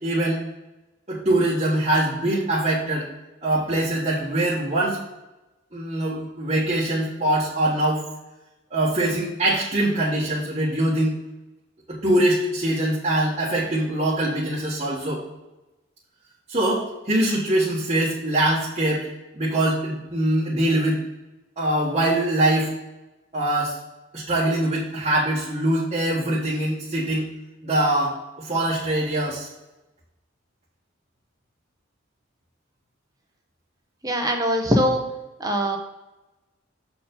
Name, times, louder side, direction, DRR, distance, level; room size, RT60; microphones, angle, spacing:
voice 1, 0.0-0.4 1.1-3.1 3.4-5.0 5.7-8.0 8.7-11.1 11.9-15.2 16.5-19.1 19.3-21.0 21.6-22.7 23.3-23.8 24.1-27.3 27.6-29.5, right 1 dB, 35° right, -7 dB, 1.5 m, -23 dB
voice 2, 34.0-35.0 35.4-35.8, equal, 20° right, 2 dB, 0.9 m, -22 dB
7.4 x 4.6 x 5.3 m, 1.0 s
head